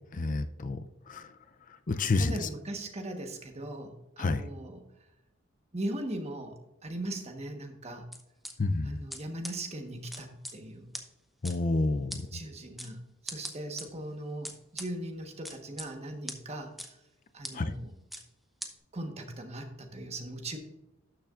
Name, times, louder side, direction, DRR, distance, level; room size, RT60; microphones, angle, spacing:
voice 1, 0.1-0.8 1.1-1.2 1.9-2.5 4.2-4.4 8.6-9.0 11.4-12.3 17.5-17.7, left 3 dB, 40° left, 9 dB, 0.5 m, -29 dB
voice 2, 2.2-4.8 5.7-6.5 6.8-8.0 8.8-10.9 12.3-13.0 13.2-16.7 17.3-17.9 18.9-20.6, right 1 dB, 30° right, 5 dB, 1.3 m, -39 dB
sound 1, 8.1-8.5 9.1-9.2 9.4-9.5 10.1-10.5 10.9-11.0 11.4-11.5 12.1-12.2 12.8-12.9 13.3-13.8 14.4-14.9 15.4-15.9 16.3-16.4 16.8-16.9 17.4-17.5 18.1-18.2 18.6-18.7, equal, ahead, 0.9 m, -39 dB
12.5 x 6.9 x 2.5 m, 0.92 s
head